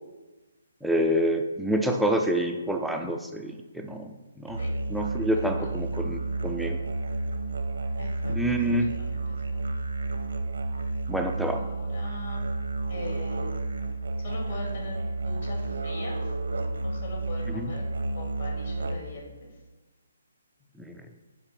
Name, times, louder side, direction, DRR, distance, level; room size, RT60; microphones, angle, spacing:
voice 1, 0.8-4.6 4.9-6.8 8.2-8.9 11.1-11.6 17.5-17.7 20.9-21.0, equal, ahead, 3 dB, 0.4 m, -27 dB
Musical instrument, 4.5-19.2, right 3 dB, 90° right, 0.9 m, -31 dB
voice 2, 5.3-5.7 8.0-8.3 8.7-9.6 11.6-12.5 12.9-13.6 14.2-16.3 16.8-17.8 18.1-19.5, left 3 dB, 50° left, -2 dB, 2.7 m, -41 dB
10.0 x 3.5 x 5.8 m, 1.2 s
hypercardioid pair, 170°, 0 cm